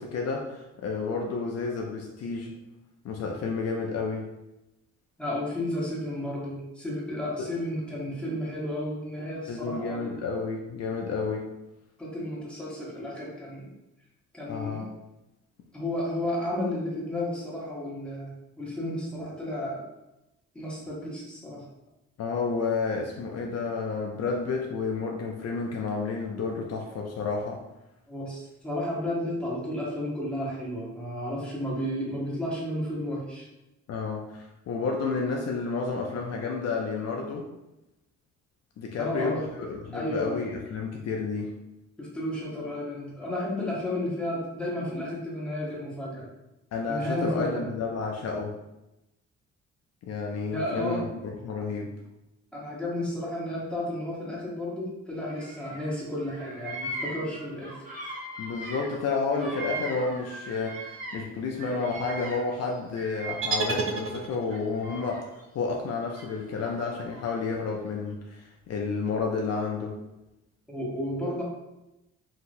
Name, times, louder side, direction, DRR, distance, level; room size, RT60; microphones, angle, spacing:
voice 1, 0.0-2.5 3.0-4.3 7.4-7.5 9.5-11.5 14.5-14.9 22.2-27.6 33.9-37.4 38.8-41.5 46.7-48.5 50.1-51.9 58.4-70.0, left 4 dB, 55° left, 0 dB, 0.5 m, -31 dB
voice 2, 5.2-10.1 12.0-13.7 14.3-14.9 15.7-19.8 20.5-21.7 28.1-33.5 39.0-39.5 39.9-40.3 42.0-46.3 46.9-47.6 50.5-51.1 52.5-57.8 70.7-71.4, left 1 dB, 5° left, -6 dB, 1.1 m, -32 dB
Bird vocalization bird call bird song, 55.2-55.9 56.2-61.3 61.6-64.0 64.4-65.4 66.1-67.2, right 2 dB, 25° right, 1.3 m, -39 dB
sound 1, 63.4-64.7, right 4 dB, 45° right, 0.5 m, -30 dB
2.9 x 2.8 x 2.6 m, 0.93 s
cardioid pair, 90°, 30 cm